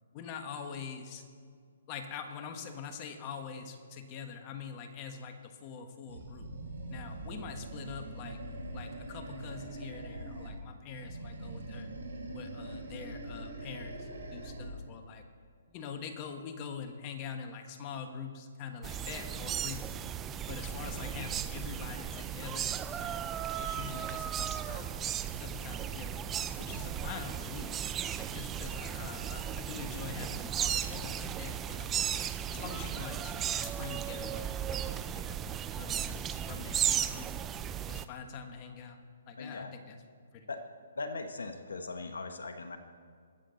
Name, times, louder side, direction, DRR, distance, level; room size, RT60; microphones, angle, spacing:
voice 1, 0.1-1.2 1.9-6.5 6.9-8.4 8.7-11.9 12.3-15.2 15.7-20.0 20.5-24.9 25.4-27.7 28.2-32.1 32.5-33.3 33.6-37.3 37.8-39.0 39.3-40.0 40.3-40.5, left 6 dB, 30° left, 6 dB, 1.3 m, -44 dB
Animal, 6.1-10.6 10.9-14.8, right 2 dB, 80° right, 3.7 m, -43 dB
sound 1, 18.8-38.0, right 9 dB, 15° right, 0.4 m, -35 dB
voice 2, 39.4-39.7 40.5-40.6 41.0-42.8, left 3 dB, 85° left, 6 dB, 1.0 m, -39 dB
22.0 x 7.5 x 3.9 m, 2.1 s
hypercardioid pair, 145°, 0 cm